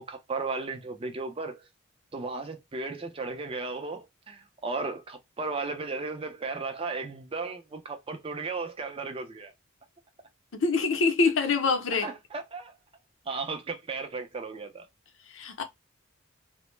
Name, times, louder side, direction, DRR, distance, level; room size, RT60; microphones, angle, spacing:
voice 1, 0.0-1.7 2.1-9.5 12.0-12.7 13.3-14.9, right 3 dB, 25° right, 0.4 m, -35 dB
voice 2, 10.5-12.1 15.3-15.6, left 4 dB, 65° left, 0.6 m, -25 dB
2.0 x 2.0 x 3.0 m
head